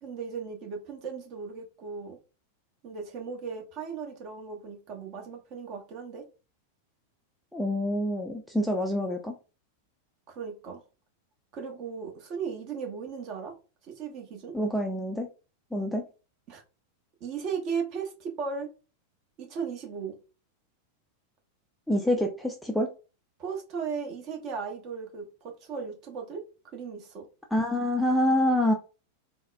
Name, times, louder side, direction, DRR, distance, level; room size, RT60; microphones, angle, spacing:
voice 1, 0.0-2.2 2.8-6.2 10.3-10.8 11.5-13.5 13.8-14.5 16.5-16.6 17.2-18.7 19.4-20.2 23.4-27.3, right 6 dB, 40° right, 0.9 m, -36 dB
voice 2, 7.5-9.3 14.5-15.3 15.7-16.0 21.9-22.9 27.5-28.7, left 1 dB, ahead, 0.4 m, -26 dB
3.9 x 2.1 x 2.5 m
figure-of-eight pair, 90°, 0 cm